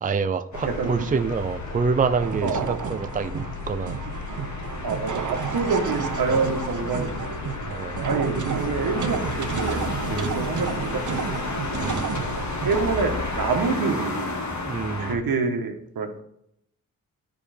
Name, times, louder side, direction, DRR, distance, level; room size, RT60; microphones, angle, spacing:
voice 1, 0.0-4.0 6.3-6.5 7.7-8.0 10.1-10.4 11.8-12.1 14.7-15.2, right 5 dB, 25° right, 0.5 m, -27 dB
sound 1, 0.5-13.6, left 6 dB, 80° left, 0.8 m, -38 dB
sound 2, 0.5-15.1, left 2 dB, 55° left, 1.7 m, -33 dB
voice 2, 0.6-1.1 2.4-2.6 4.8-7.4 8.0-11.4 12.6-14.4 15.0-16.2, right 4 dB, 85° right, 1.5 m, -27 dB
sound 3, 2.2-13.0, right 7 dB, 60° right, 0.8 m, -32 dB
9.7 x 5.1 x 5.1 m
cardioid pair, 90°, 34 cm